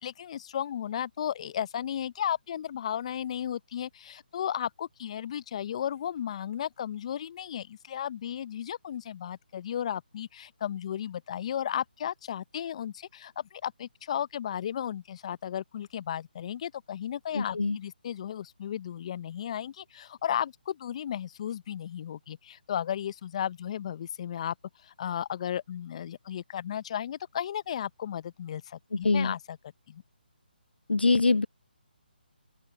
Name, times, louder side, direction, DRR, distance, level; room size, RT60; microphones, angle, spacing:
voice 1, 0.0-24.5 24.8-29.6 29.9-30.0, left 9 dB, 35° left, 0.9 m, -34 dB
voice 2, 17.3-17.8 28.9-29.3 30.9-31.5, left 3 dB, 80° left, 0.4 m, -24 dB
open air
figure-of-eight pair, 150°, 5 cm